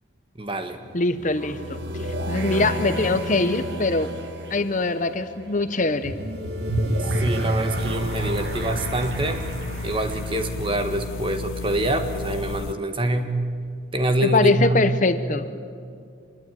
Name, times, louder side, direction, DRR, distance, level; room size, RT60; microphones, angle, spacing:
voice 1, 0.4-0.8 7.0-9.4 9.8-13.4 13.9-14.9, right 1 dB, 25° right, 7 dB, 1.6 m, -25 dB
sound 1, 0.8-11.6, right 1 dB, 55° right, 1.9 m, -30 dB
voice 2, 0.9-1.8 2.3-4.1 4.5-6.1 14.2-15.5, left 3 dB, 40° left, 11 dB, 0.9 m, -22 dB
sound 2, 7.7-12.7, left 2 dB, 85° left, 0.6 m, -33 dB
25.5 x 21.5 x 9.3 m, 2.2 s
head